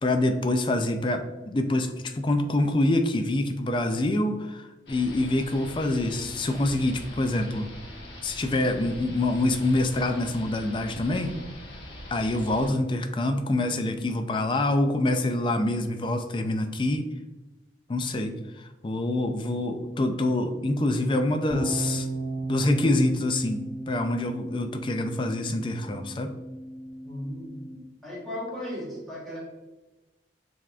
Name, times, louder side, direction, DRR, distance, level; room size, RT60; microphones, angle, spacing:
voice 1, 0.0-7.7 8.2-11.3 12.1-17.1 17.9-22.1 22.5-26.3, left 2 dB, 25° left, 7 dB, 0.3 m, -26 dB
sound 1, 4.9-12.7, left 1 dB, 80° left, 1.1 m, -42 dB
sound 2, 21.5-27.8, right 2 dB, 35° right, 1.0 m, -35 dB
voice 2, 27.0-27.6 28.0-29.4, left 1 dB, ahead, -8 dB, 1.3 m, -36 dB
5.6 x 3.5 x 2.4 m, 1.1 s
head